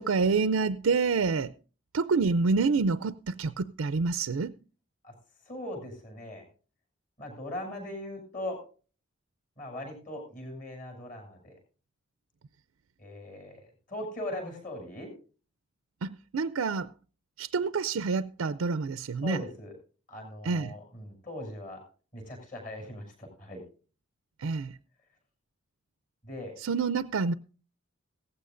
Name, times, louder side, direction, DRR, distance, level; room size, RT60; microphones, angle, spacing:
voice 1, 0.0-1.5 1.9-4.5 16.0-16.9 17.4-19.4 20.4-20.7 24.4-24.8 26.6-27.3, right 4 dB, 85° right, 0.5 m, -27 dB
voice 2, 5.5-6.4 7.2-8.6 9.6-11.6 13.0-13.6 13.9-15.1 19.2-19.7 20.1-21.8 22.1-23.6 26.2-26.5, left 1 dB, 40° left, 7.0 m, -39 dB
17.0 x 15.0 x 2.5 m
head